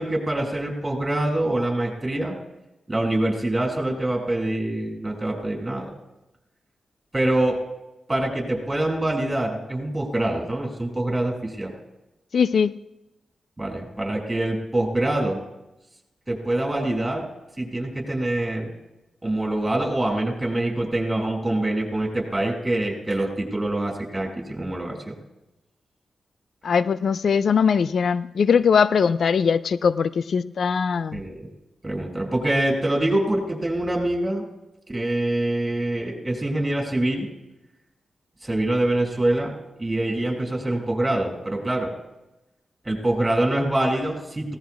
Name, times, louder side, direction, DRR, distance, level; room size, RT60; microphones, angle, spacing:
voice 1, 0.0-2.4 2.9-5.9 7.1-7.6 8.1-11.7 13.6-15.4 16.3-17.3 17.6-18.7 19.2-25.1 31.1-31.5 31.8-34.4 34.9-37.3 38.4-39.5 39.8-41.9 42.8-44.5, right 1 dB, 20° right, 0 dB, 6.3 m, -25 dB
voice 2, 12.3-12.8 26.6-31.2, left 6 dB, 70° left, 16 dB, 0.4 m, -21 dB
18.5 x 17.5 x 2.4 m, 0.94 s
cardioid pair, 50°, 0 cm